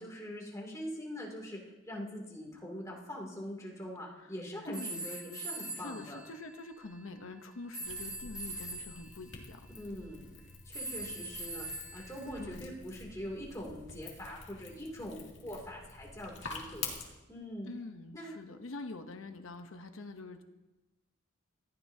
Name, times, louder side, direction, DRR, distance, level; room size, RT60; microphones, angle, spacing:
voice 1, 0.0-1.6 1.9-6.2 9.7-10.3 10.6-16.9 17.3-17.7 18.1-18.4, equal, 15° left, -2 dB, 2.7 m, -43 dB
voice 2, 4.6-5.4 5.7-9.7 12.4-12.7 17.6-20.4, left 3 dB, 85° left, 6 dB, 0.9 m, -45 dB
sound 1, 4.7-7.0 7.7-9.2 10.7-12.5, right 1 dB, 5° right, 1.2 m, -42 dB
sound 2, 7.8-17.0, left 4 dB, 60° left, 2.5 m, -47 dB
19.0 x 14.5 x 2.8 m, 1.1 s
head